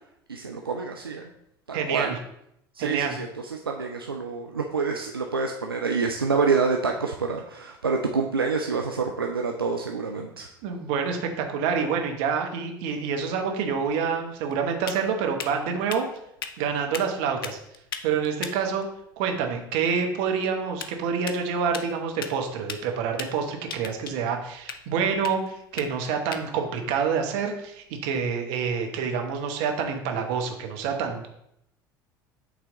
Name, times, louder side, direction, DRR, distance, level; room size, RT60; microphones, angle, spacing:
voice 1, 0.3-1.3 1.7-2.1 2.7-10.5, right 4 dB, 90° right, 2 dB, 0.4 m, -27 dB
voice 2, 1.7-2.2 2.8-3.2 10.6-16.1 16.6-17.6 18.0-18.9 19.2-31.3, right 6 dB, 60° right, 3 dB, 1.0 m, -27 dB
sound 1, 13.7-28.3, left 7 dB, 75° left, 0.5 m, -42 dB
8.1 x 3.4 x 3.7 m, 0.77 s
figure-of-eight pair, 65°, 12 cm